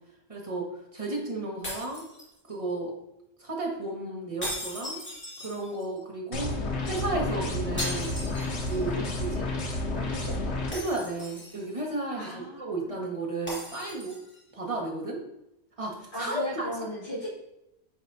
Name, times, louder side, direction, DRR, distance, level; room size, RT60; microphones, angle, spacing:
voice 1, 0.3-0.7 0.9-2.0 2.5-2.9 3.4-5.0 5.4-6.5 6.8-8.1 8.7-9.5 10.7-14.1 14.5-15.2 15.8-16.6, right 2 dB, 30° right, -2 dB, 1.5 m, -33 dB
sound 1, 1.6-2.7 4.4-6.0 7.8-9.0 9.3-9.4 10.7-11.8 13.5-14.4, equal, 10° left, 2.0 m, -38 dB
sound 2, 6.3-10.7, left 2 dB, 85° left, 1.3 m, -31 dB
voice 2, 9.9-10.6 12.1-12.9 16.1-17.4, equal, 45° left, -14 dB, 2.8 m, -37 dB
9.4 x 4.1 x 2.7 m, 0.84 s
omnidirectional pair, 1.1 m